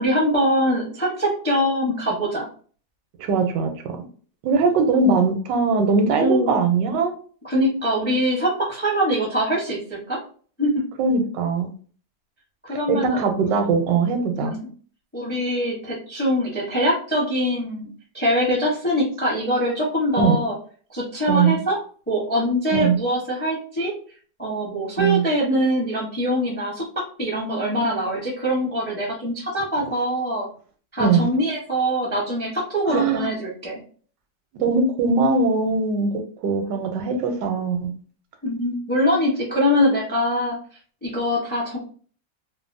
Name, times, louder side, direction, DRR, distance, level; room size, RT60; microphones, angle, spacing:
voice 1, 0.0-2.5 6.2-6.6 7.4-10.2 10.6-10.8 12.7-13.2 14.4-14.7 15.1-20.5 20.9-21.8 22.1-23.9 24.4-26.9 27.2-30.5 30.9-33.8 38.4-40.5 41.0-41.8, equal, 10° left, -4 dB, 0.5 m, -23 dB
voice 2, 3.2-4.0 4.4-7.1 11.0-11.7 12.9-14.5 20.2-20.4 21.3-21.6 22.7-23.0 25.0-25.2 31.0-31.3 32.9-33.3 34.5-37.9, right 4 dB, 90° right, 5 dB, 1.3 m, -21 dB
3.3 x 2.1 x 2.5 m, 0.43 s
omnidirectional pair, 1.9 m